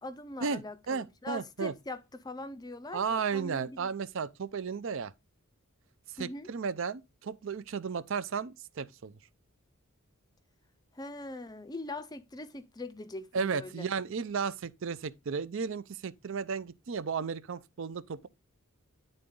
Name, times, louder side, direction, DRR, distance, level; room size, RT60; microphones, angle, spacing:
voice 1, 0.0-3.9 6.2-6.5 10.9-13.9, left 2 dB, 20° left, 0.5 m, -42 dB
voice 2, 0.9-1.7 2.9-5.1 6.2-9.1 13.3-18.3, right 5 dB, 60° right, 0.5 m, -34 dB
10.0 x 3.9 x 3.7 m
head